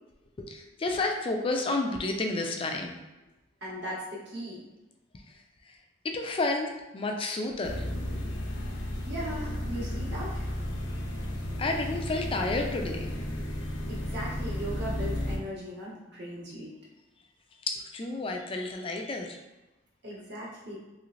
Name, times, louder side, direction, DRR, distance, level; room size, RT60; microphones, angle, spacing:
voice 1, 0.4-2.9 6.0-7.9 11.6-13.1 17.7-19.4, left 2 dB, 30° left, 3 dB, 0.3 m, -30 dB
voice 2, 3.6-4.6 9.0-10.5 13.9-16.7 20.0-20.8, equal, 60° right, -7 dB, 1.2 m, -38 dB
sound 1, 7.6-15.4, left 1 dB, 75° left, 0.6 m, -33 dB
3.1 x 3.1 x 2.5 m, 1.1 s
head